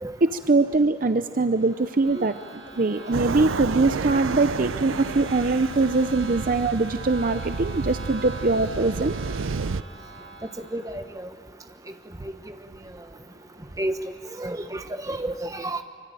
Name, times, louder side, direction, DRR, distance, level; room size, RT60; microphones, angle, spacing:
voice 1, 0.2-9.1, right 3 dB, 45° right, 10 dB, 0.6 m, -22 dB
sound 1, 1.4-11.1, right 3 dB, 65° right, 6.6 m, -42 dB
sound 2, 3.1-9.8, right 5 dB, 90° right, 0.6 m, -31 dB
voice 2, 10.7-11.0 13.8-13.9 14.4-15.8, right 1 dB, 15° right, 7 dB, 1.1 m, -30 dB
24.5 x 24.0 x 9.0 m, 2.2 s
head